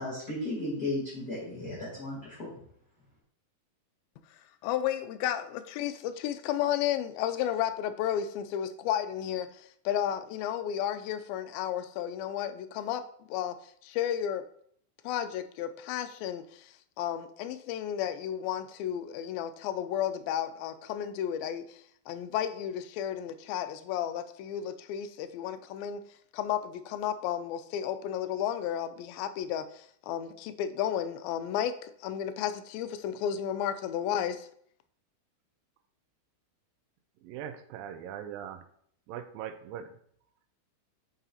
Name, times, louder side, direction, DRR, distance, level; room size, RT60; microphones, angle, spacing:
voice 1, 0.0-2.5, left 1 dB, 30° left, -9 dB, 2.1 m, -35 dB
voice 2, 4.6-13.6 13.8-14.4 15.0-26.0 26.3-34.5, left 10 dB, 90° left, 11 dB, 2.4 m, -33 dB
voice 3, 37.2-38.6 39.1-39.9, right 9 dB, 80° right, 9 dB, 2.4 m, -40 dB
9.4 x 5.6 x 2.9 m, 0.64 s
omnidirectional pair, 4.2 m